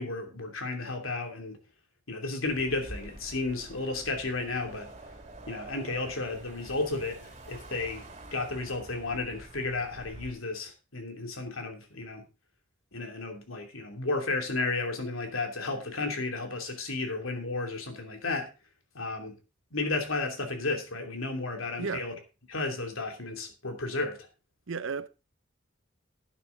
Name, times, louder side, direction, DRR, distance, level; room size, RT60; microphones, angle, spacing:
voice 1, 0.0-1.6 2.1-4.9 5.5-8.0 8.3-12.2 12.9-18.5 18.9-19.4 19.7-22.1 22.5-24.2, left 3 dB, 90° left, 2.8 m, -33 dB
sound 1, 2.4-10.3, right 2 dB, 35° right, 2.6 m, -47 dB
voice 2, 24.7-25.1, right 5 dB, 65° right, 0.7 m, -33 dB
11.5 x 9.4 x 3.9 m
head